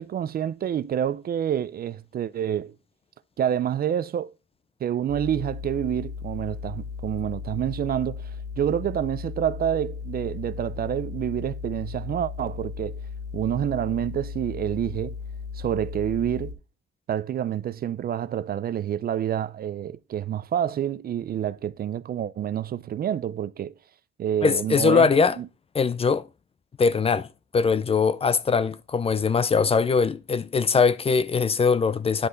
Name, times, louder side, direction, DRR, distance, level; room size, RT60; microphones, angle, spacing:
voice 1, 0.0-2.7 3.4-4.3 4.8-8.3 8.6-13.0 13.3-15.2 15.5-16.6 17.1-23.7 24.2-25.1 25.4-25.5, right 10 dB, 50° right, 0.5 m, -28 dB
sound 1, 5.1-16.5, left 5 dB, 55° left, 2.9 m, -36 dB
voice 2, 24.4-25.4 25.7-26.3 26.8-27.3 27.5-32.3, left 5 dB, 30° left, 0.5 m, -21 dB
10.0 x 5.4 x 3.8 m
cardioid pair, 90°, 20 cm